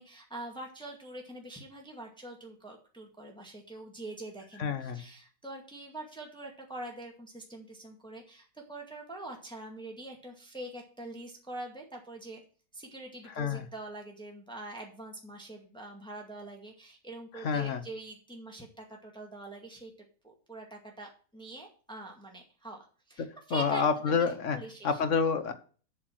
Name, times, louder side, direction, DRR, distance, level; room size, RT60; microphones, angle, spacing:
voice 1, 0.0-12.4 12.7-19.9 20.2-25.0, right 2 dB, 5° left, 2.0 m, -44 dB
voice 2, 4.6-5.0 13.3-13.7 17.3-17.8 23.2-24.6 24.8-25.5, left 6 dB, 50° left, 1.2 m, -29 dB
7.9 x 6.8 x 6.2 m
omnidirectional pair, 1.9 m